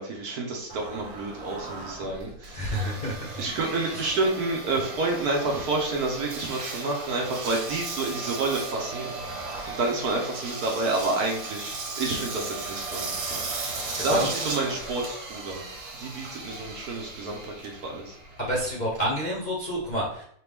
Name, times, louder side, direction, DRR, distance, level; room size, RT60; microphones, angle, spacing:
voice 1, 0.0-2.7 3.4-9.2 9.7-13.4 14.0-15.6 16.0-18.2, right 2 dB, 60° right, 0 dB, 1.2 m, -29 dB
Engine, 0.7-19.1, right 3 dB, 90° right, 1.8 m, -36 dB
voice 2, 2.5-3.3 3.9-4.1 14.0-14.3 18.4-20.2, equal, 35° left, -4 dB, 0.7 m, -29 dB
4.9 x 3.0 x 3.4 m, 0.65 s
omnidirectional pair, 2.0 m